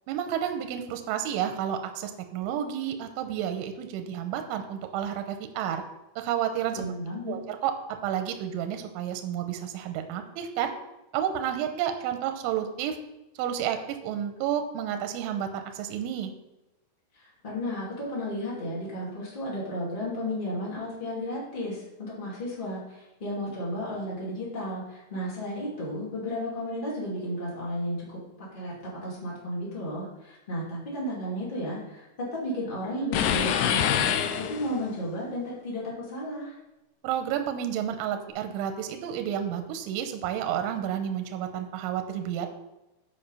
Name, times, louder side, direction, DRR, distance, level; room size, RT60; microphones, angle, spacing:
voice 1, 0.1-5.8 6.2-6.9 7.3-7.7 8.0-10.7 11.1-13.0 13.4-16.3 37.0-42.5, right 9 dB, 80° right, 6 dB, 2.9 m, -31 dB
voice 2, 6.7-7.4 17.1-36.5, equal, 60° left, -6 dB, 0.5 m, -33 dB
sound 1, 33.1-35.0, left 8 dB, 85° left, 2.6 m, -25 dB
8.9 x 5.0 x 5.5 m, 0.95 s
omnidirectional pair, 5.9 m